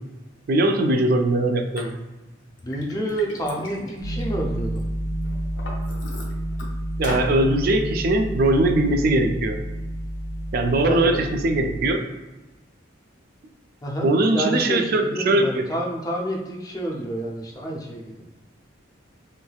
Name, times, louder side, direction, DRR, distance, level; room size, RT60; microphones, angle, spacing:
voice 1, 0.5-2.0 7.0-9.6 10.5-12.1 14.0-15.7, right 2 dB, 45° right, 5 dB, 0.3 m, -21 dB
Liquid, 1.8-1.9 2.4-4.8 5.2-6.6 7.0-7.3, left 2 dB, 65° left, 0.7 m, -37 dB
voice 2, 2.6-4.8 10.9-11.3 13.8-18.2, right 1 dB, 20° left, -1 dB, 0.4 m, -29 dB
sound 1, 4.0-11.9, right 1 dB, 85° right, 0.8 m, -30 dB
3.2 x 3.1 x 2.3 m, 1.1 s
head